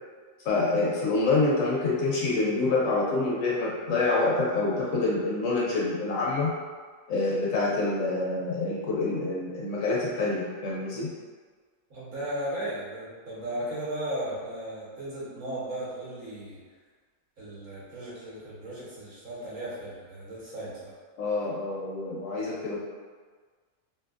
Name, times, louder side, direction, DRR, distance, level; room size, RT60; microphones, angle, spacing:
voice 1, 0.4-6.6 7.1-11.1 21.2-22.8, left 3 dB, 70° left, -4 dB, 0.8 m, -26 dB
voice 2, 11.9-16.6 17.4-20.9, right 1 dB, 60° right, -8 dB, 1.4 m, -36 dB
3.2 x 2.6 x 2.4 m, 1.5 s
omnidirectional pair, 1.5 m